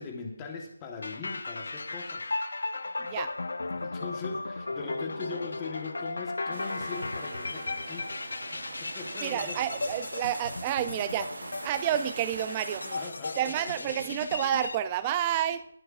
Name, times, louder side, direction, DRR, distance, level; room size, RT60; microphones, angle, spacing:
voice 1, 0.0-2.3 3.7-9.6 12.8-14.0, left 4 dB, 15° left, 2 dB, 1.2 m, -40 dB
sound 1, 1.0-14.8, left 3 dB, 65° left, 0.6 m, -36 dB
voice 2, 3.0-3.3 9.2-11.3 11.6-12.9 13.4-15.7, right 11 dB, 15° right, 13 dB, 0.3 m, -30 dB
sound 2, 6.5-13.1, right 3 dB, 50° right, 0.7 m, -43 dB
21.0 x 7.6 x 2.5 m, 0.75 s
figure-of-eight pair, 175°, 0 cm